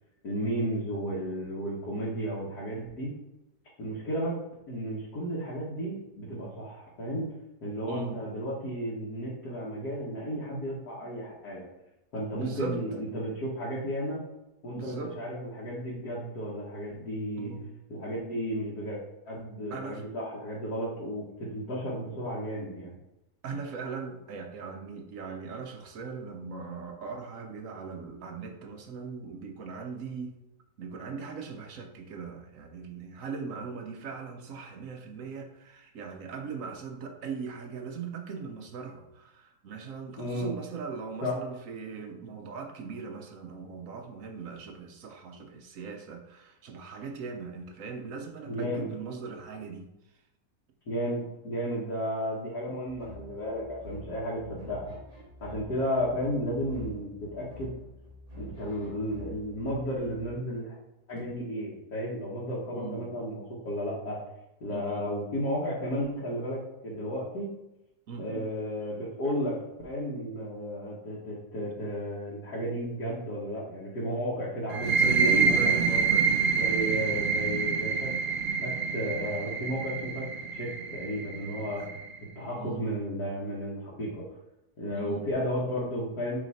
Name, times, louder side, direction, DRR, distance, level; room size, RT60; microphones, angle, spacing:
voice 1, 0.2-3.1 3.8-4.4 4.7-7.3 7.6-11.7 12.1-14.2 14.6-17.5 17.9-19.0 19.3-22.9 40.2-40.5 41.2-41.4 48.5-48.9 50.9-55.0 55.4-57.7 58.4-60.7 61.1-64.2 64.6-67.5 68.2-75.7 76.6-78.1 78.6-80.2 80.5-81.8 82.4-84.3 84.8-86.4, equal, 75° left, -7 dB, 1.9 m, -33 dB
voice 2, 7.9-8.2 12.3-12.8 14.7-15.2 17.4-17.7 19.7-20.0 23.4-30.4 30.8-49.9 62.7-63.1 64.7-65.1 68.1-68.5 75.0-76.4 81.8-81.9 82.5-82.8 84.9-85.3, right 5 dB, 60° right, 4 dB, 1.1 m, -39 dB
sound 1, 52.9-60.4, equal, 25° right, 1.6 m, -47 dB
sound 2, 74.7-82.1, right 5 dB, 90° right, 0.4 m, -27 dB
7.3 x 3.2 x 4.1 m, 0.93 s
omnidirectional pair, 1.7 m